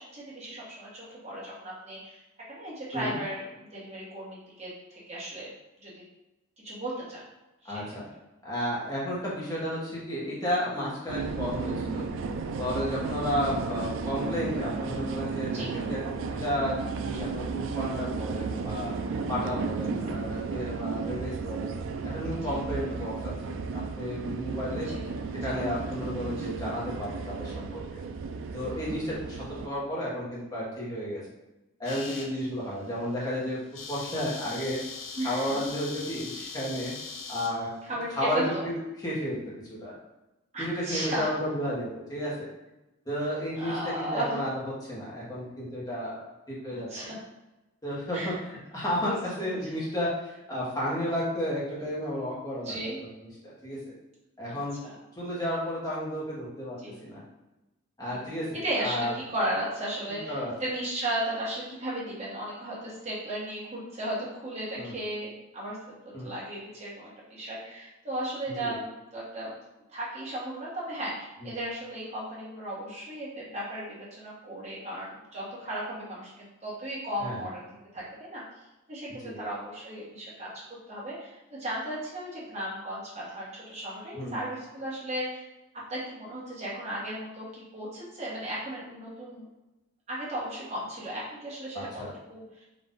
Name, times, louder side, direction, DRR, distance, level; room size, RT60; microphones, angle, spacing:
voice 1, 0.0-2.2 2.5-5.5 5.8-5.9 6.6-7.2 7.6-7.9 15.5-15.7 18.8-19.1 22.3-22.5 24.8-25.0 25.3-25.9 28.3-28.7 32.0-32.1 35.2-35.6 37.8-38.6 40.5-41.3 43.6-44.4 46.7-47.2 48.1-48.3 49.0-49.5 52.6-53.0 54.5-55.0 56.8-57.0 58.0-69.5 69.9-77.6 77.9-78.4 78.9-80.5 80.9-85.5 85.9-89.5 90.1-92.0 92.3-92.7, right 1 dB, 30° right, -7 dB, 1.3 m, -36 dB
voice 2, 7.6-8.1 8.4-12.1 12.6-16.1 16.4-18.9 19.3-21.8 22.0-24.9 25.4-28.0 28.5-31.2 31.8-33.6 33.9-34.8 35.2-36.9 37.3-37.7 38.1-38.7 39.0-39.4 39.7-39.9 40.6-42.5 43.1-46.2 46.5-47.1 47.8-52.8 53.4-53.8 54.4-54.8 55.2-57.2 58.0-59.1 60.1-60.5 64.8-64.9 66.1-66.3 68.6-68.7 71.4-71.5 77.2-77.5 79.2-79.4 84.1-84.4 91.7-92.1, equal, 15° left, -7 dB, 1.1 m, -32 dB
sound 1, 11.1-29.7, right 4 dB, 70° right, 0.3 m, -34 dB
sound 2, 31.9-32.3 32.8-33.1 33.3-33.4 33.6-37.6, left 4 dB, 75° left, 0.6 m, -40 dB
4.0 x 2.6 x 3.6 m, 1.0 s
head